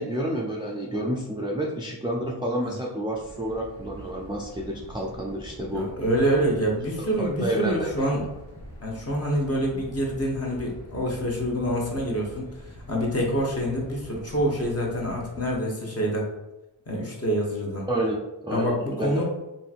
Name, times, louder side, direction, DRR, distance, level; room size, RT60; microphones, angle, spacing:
voice 1, 0.0-5.9 7.0-7.9 17.9-19.2, right 1 dB, 10° right, -3 dB, 0.3 m, -30 dB
sound 1, 3.1-15.6, equal, 85° left, 1.0 m, -45 dB
voice 2, 5.7-8.2 8.8-12.5 12.9-16.2 16.9-17.9 18.5-19.2, right 1 dB, 35° left, -2 dB, 0.9 m, -26 dB
2.8 x 2.6 x 2.4 m, 0.99 s
cardioid pair, 50°, 46 cm